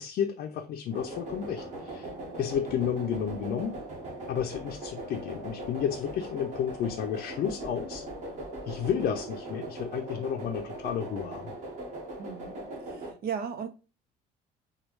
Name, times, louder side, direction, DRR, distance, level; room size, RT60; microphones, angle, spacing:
voice 1, 0.0-2.1 2.4-3.8 4.3-8.0 8.7-11.5, left 8 dB, 60° left, 0.5 m, -32 dB
sound 1, 0.9-13.1, right 1 dB, 45° right, 1.5 m, -40 dB
voice 2, 12.2-13.7, right 7 dB, 65° right, 0.8 m, -36 dB
4.6 x 2.3 x 3.1 m
cardioid pair, 110°, 17 cm